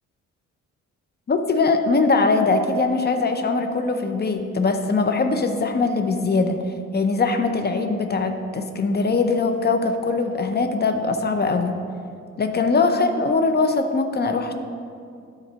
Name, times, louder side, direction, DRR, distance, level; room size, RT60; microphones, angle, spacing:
voice 1, 1.3-6.6 6.9-11.7 12.4-14.5, left 3 dB, 35° left, 6 dB, 0.6 m, -21 dB
10.0 x 3.9 x 5.5 m, 2.4 s
cardioid pair, 90°, 30 cm